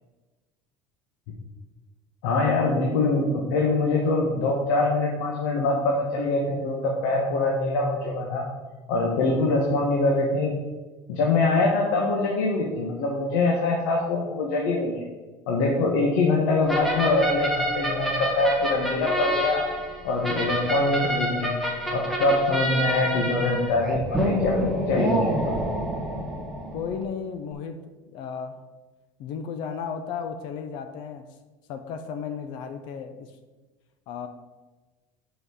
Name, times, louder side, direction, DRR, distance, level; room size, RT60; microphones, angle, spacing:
voice 1, 2.2-8.4 8.9-10.5 11.1-15.0 15.5-19.6 20.0-21.5 21.9-25.5, left 2 dB, 85° left, 0 dB, 1.3 m, -24 dB
sound 1, 16.7-27.0, equal, ahead, 1.4 m, -28 dB
voice 2, 26.7-28.6 29.2-31.3 31.7-33.3 34.1-34.3, left 6 dB, 60° left, 8 dB, 0.6 m, -34 dB
5.6 x 5.6 x 6.3 m, 1.2 s
cardioid pair, 150°, 9 cm